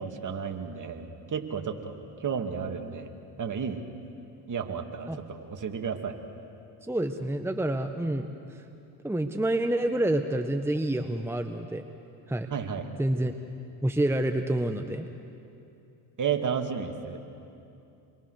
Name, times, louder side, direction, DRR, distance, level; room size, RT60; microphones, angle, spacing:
voice 1, 0.0-1.9 2.2-3.1 3.4-3.8 4.5-6.2 12.5-12.9 16.2-17.2, right 6 dB, 40° right, 5 dB, 2.5 m, -32 dB
voice 2, 6.9-8.3 9.0-11.8 12.3-12.5 13.0-13.3 13.8-15.1, right 1 dB, 5° right, 6 dB, 1.2 m, -28 dB
28.5 x 22.0 x 6.6 m, 2.7 s
hypercardioid pair, 75°, 48 cm